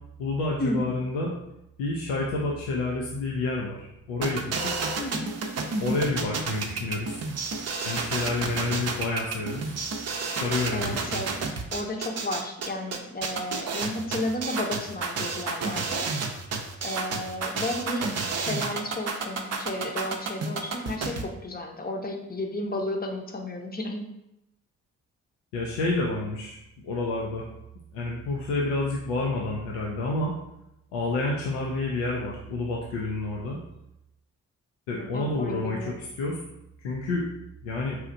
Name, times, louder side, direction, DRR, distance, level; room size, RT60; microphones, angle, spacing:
voice 1, 0.2-1.4 1.8-4.8 5.8-7.2 7.8-9.7 10.4-11.0 25.5-27.5 27.9-30.4 30.9-33.6 34.9-36.4 36.8-37.3 37.6-38.0, left 2 dB, 90° left, -2 dB, 0.5 m, -29 dB
sound 1, 4.2-21.2, right 4 dB, 40° right, 0.6 m, -31 dB
voice 2, 5.0-5.3 10.7-11.3 11.7-16.1 16.8-24.1 35.0-36.0, left 1 dB, 25° left, 2 dB, 0.7 m, -33 dB
4.2 x 2.4 x 2.6 m, 0.85 s
hypercardioid pair, 45°, 38 cm